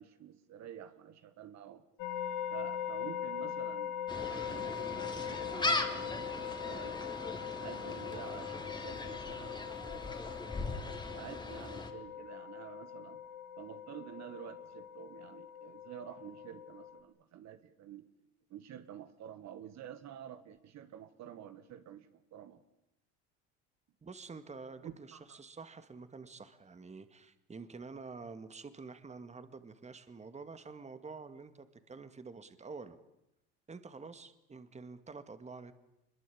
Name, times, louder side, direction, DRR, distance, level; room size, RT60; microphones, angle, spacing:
voice 1, 0.0-1.8 2.5-4.0 4.3-7.0 7.6-10.1 11.1-13.2 13.6-18.1 18.5-22.6 24.8-25.4, right 10 dB, 55° right, 10 dB, 1.9 m, -49 dB
sound 1, 2.0-17.0, left 9 dB, 75° left, 3.3 m, -41 dB
Gull seagull, 4.1-11.9, left 2 dB, 15° left, 3.3 m, -39 dB
voice 2, 24.0-33.0 33.7-35.7, right 4 dB, 20° right, 10 dB, 2.2 m, -48 dB
25.0 x 22.5 x 8.8 m, 0.86 s
supercardioid pair, 100°, 33 cm